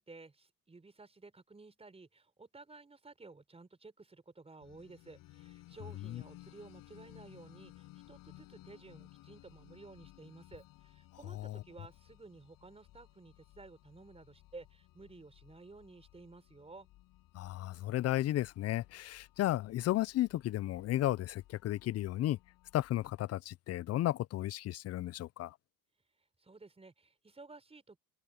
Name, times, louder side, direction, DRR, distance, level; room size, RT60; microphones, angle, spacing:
voice 1, 0.0-16.9 26.4-28.0, right 3 dB, 15° right, 5.1 m, -54 dB
sound 1, 4.6-23.2, left 17 dB, 80° left, 6.7 m, -59 dB
voice 2, 17.3-22.4 22.7-25.5, left 14 dB, 50° left, 0.5 m, -34 dB
cardioid pair, 115°, 34 cm